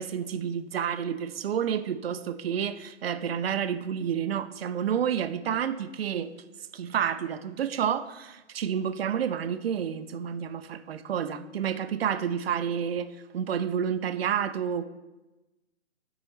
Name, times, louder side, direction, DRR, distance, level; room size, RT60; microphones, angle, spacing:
voice 1, 0.0-6.3 6.7-14.8, right 8 dB, 55° right, 0.6 m, -30 dB
12.5 x 4.7 x 3.2 m
figure-of-eight pair, 135°, 37 cm